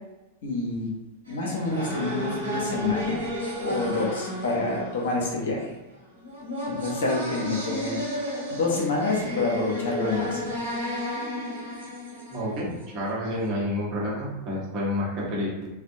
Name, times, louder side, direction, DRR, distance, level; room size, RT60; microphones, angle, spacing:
voice 1, 0.4-0.9 1.3-3.2 3.6-5.7 6.7-8.0 8.5-10.6, left 3 dB, 60° left, -2 dB, 0.7 m, -28 dB
sound 1, 1.3-13.1, equal, 80° right, 1.0 m, -33 dB
voice 2, 12.3-15.7, left 1 dB, 35° right, -5 dB, 0.9 m, -29 dB
2.5 x 2.1 x 2.6 m, 0.98 s
figure-of-eight pair, 90°, 0 cm